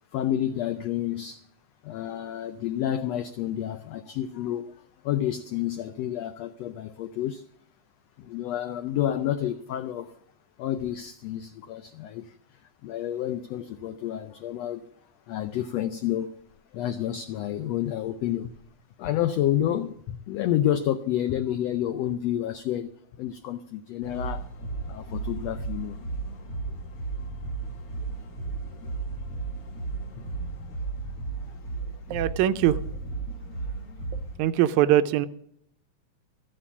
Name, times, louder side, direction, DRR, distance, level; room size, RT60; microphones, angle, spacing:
voice 1, 0.1-1.5 1.8-7.4 8.2-10.2 10.6-14.8 15.3-16.4 16.7-18.5 19.0-22.9 23.2-24.4 24.9-26.0 30.2-30.3, left 11 dB, 85° left, 1.4 m, -29 dB
sound 1, 24.0-34.4, right 3 dB, 60° left, 0.9 m, -34 dB
voice 2, 32.1-33.0 34.4-35.3, right 12 dB, 75° right, 1.9 m, -22 dB
14.0 x 8.5 x 7.2 m
omnidirectional pair, 3.7 m